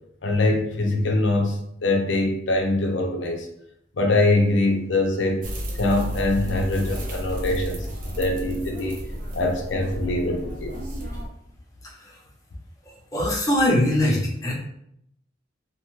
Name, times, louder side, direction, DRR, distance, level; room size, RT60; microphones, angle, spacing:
voice 1, 0.2-3.5 3.9-5.5 5.8-9.0 9.3-10.8, left 2 dB, 85° left, 2 dB, 0.6 m, -23 dB
sound 1, 5.4-11.3, equal, 50° right, 0.6 m, -32 dB
voice 2, 11.8-12.2 12.8-14.5, left 1 dB, 20° left, -4 dB, 0.8 m, -23 dB
2.9 x 2.3 x 3.0 m, 0.75 s
head